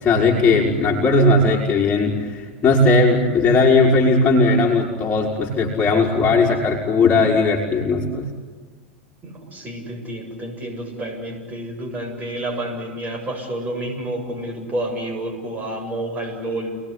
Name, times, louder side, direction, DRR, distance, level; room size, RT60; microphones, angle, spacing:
voice 1, 0.0-8.3, left 3 dB, 20° left, -4 dB, 5.1 m, -17 dB
voice 2, 9.2-16.8, right 1 dB, 25° right, 3 dB, 7.7 m, -29 dB
29.0 x 20.0 x 10.0 m, 1.4 s
hypercardioid pair, 100°, 6 cm